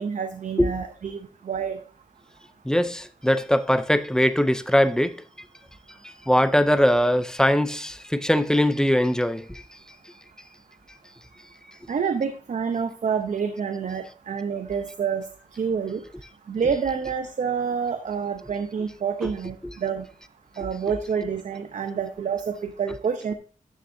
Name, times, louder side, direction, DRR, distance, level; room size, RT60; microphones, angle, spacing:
voice 1, 0.0-1.8 11.9-15.3 15.6-16.0 16.5-20.1 20.6-23.3, right 6 dB, 65° right, 0.7 m, -28 dB
voice 2, 2.6-5.2 6.0-9.6 19.2-19.3 19.6-19.7, equal, 5° left, 0.4 m, -21 dB
12.5 x 7.1 x 2.7 m
wide cardioid pair, 160°, 14 cm